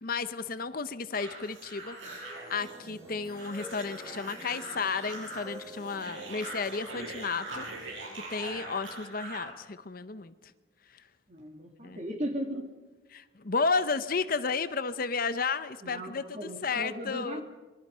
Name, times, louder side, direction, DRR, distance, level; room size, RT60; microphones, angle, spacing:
voice 1, 0.0-10.3 11.8-12.0 13.1-17.4, left 4 dB, 45° left, 12 dB, 0.8 m, -33 dB
sound 1, 1.1-10.4, equal, 15° right, 2.9 m, -51 dB
sound 2, 1.1-9.5, right 2 dB, 75° right, 7.8 m, -42 dB
voice 2, 11.3-12.6 15.8-17.4, equal, 35° right, 4 dB, 3.0 m, -37 dB
26.5 x 23.0 x 5.6 m, 1.2 s
head